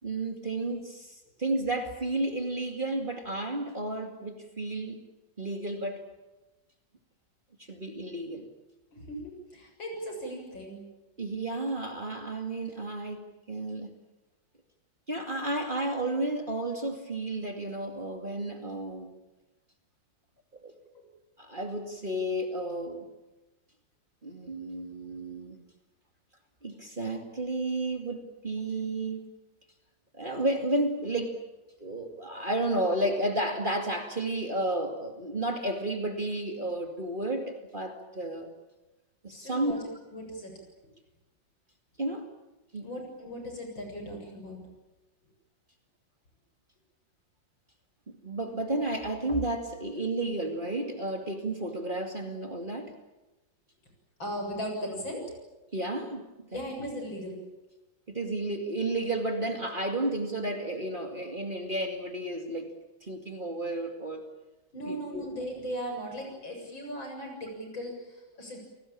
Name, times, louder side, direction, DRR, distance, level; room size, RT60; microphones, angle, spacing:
voice 1, 0.0-5.0 5.4-6.0 7.6-8.5 11.2-13.9 15.1-19.1 20.6-20.7 21.4-23.1 24.2-25.6 26.6-29.2 30.1-31.4 31.8-38.5 39.2-39.8 42.0-42.3 42.7-42.9 48.1-52.9 55.7-56.3 56.5-56.6 58.1-62.7 63.0-64.3 64.8-65.3, right 2 dB, 25° right, 5 dB, 2.5 m, -32 dB
voice 2, 8.9-10.8 20.9-21.0 39.3-39.8 40.1-40.5 42.8-44.6 54.2-55.2 56.5-57.4 64.7-68.6, equal, 75° left, 3 dB, 8.1 m, -37 dB
29.0 x 19.5 x 8.8 m, 1.0 s
omnidirectional pair, 2.1 m